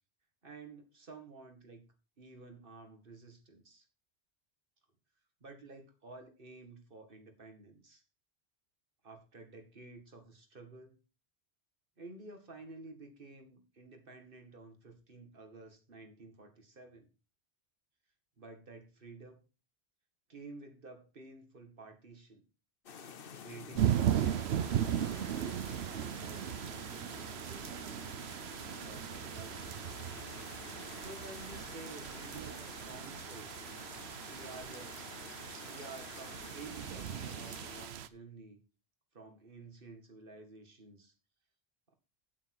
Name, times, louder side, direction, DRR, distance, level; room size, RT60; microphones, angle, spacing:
voice 1, 0.4-1.9 2.2-3.9 5.4-8.0 9.0-11.0 12.0-17.1 18.4-19.4 20.3-22.4 23.4-25.4 25.9-28.1 28.6-29.6 30.9-33.5 34.3-35.0 35.6-38.6 39.1-41.1, right 3 dB, 55° right, 5 dB, 2.1 m, -52 dB
sound 1, 22.9-37.9, left 6 dB, 60° left, 1.0 m, -50 dB
sound 2, 23.7-38.1, right 10 dB, 80° right, 0.9 m, -37 dB
9.0 x 8.4 x 4.7 m, 0.33 s
omnidirectional pair, 1.1 m